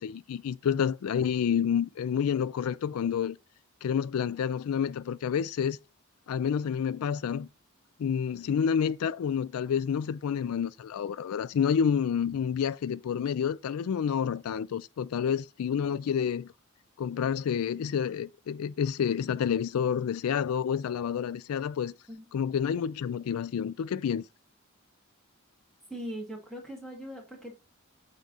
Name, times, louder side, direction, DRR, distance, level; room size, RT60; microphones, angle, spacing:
voice 1, 0.0-3.4 3.8-5.8 6.3-7.5 8.0-16.5 17.0-21.9 22.3-24.2, left 7 dB, 90° left, 0.4 m, -29 dB
voice 2, 25.9-27.5, equal, ahead, 2.2 m, -40 dB
8.1 x 3.7 x 4.0 m
head